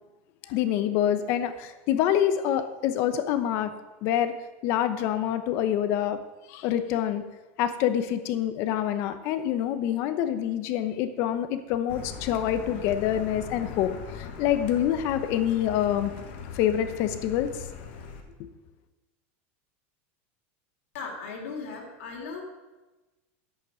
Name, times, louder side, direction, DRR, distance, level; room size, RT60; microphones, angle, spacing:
voice 1, 0.5-3.7 4.0-4.3 4.6-6.2 6.5-7.2 7.6-16.1 16.5-17.5 18.4-18.5, left 10 dB, 40° left, 10 dB, 0.8 m, -26 dB
Car, 11.9-18.2, left 7 dB, 55° left, 1.5 m, -40 dB
voice 2, 20.9-22.4, left 4 dB, 75° left, -1 dB, 3.0 m, -37 dB
11.0 x 8.3 x 6.3 m, 1.1 s
supercardioid pair, 175°, 7 cm